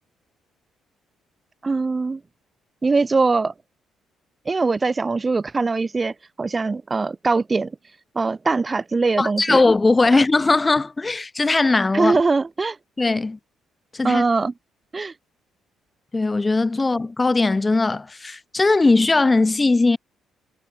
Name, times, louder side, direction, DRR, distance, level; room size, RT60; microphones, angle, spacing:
voice 1, 1.6-2.2 2.8-3.5 4.4-7.7 8.1-9.6 10.0-10.2 11.9-12.8 14.0-14.5 14.9-15.1, right 3 dB, 20° right, 1.4 m, -22 dB
voice 2, 9.2-12.2 13.0-13.4 13.9-14.2 16.1-20.0, left 3 dB, 15° left, 2.6 m, -19 dB
cardioid pair, 155°, 0 cm